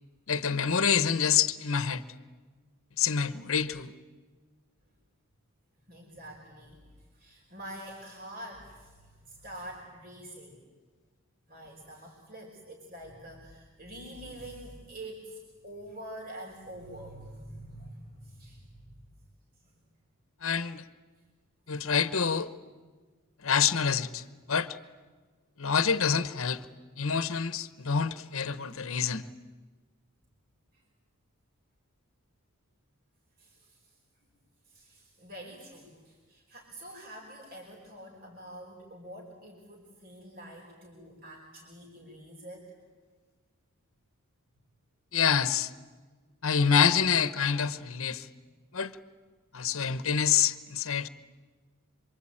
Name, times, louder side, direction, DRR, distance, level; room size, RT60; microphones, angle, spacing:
voice 1, 0.3-2.0 3.0-3.9 20.4-20.8 21.7-22.5 23.4-24.8 25.6-26.6 27.0-29.3 45.1-45.7 46.4-48.3 48.7-48.9 49.5-51.1, left 7 dB, 65° left, 1.1 m, -27 dB
voice 2, 5.9-10.6 11.5-19.0 19.6-19.7 21.7-21.8 30.7-30.8 33.4-33.9 34.6-42.8, right 1 dB, 45° right, 5.0 m, -46 dB
27.5 x 24.5 x 8.8 m
head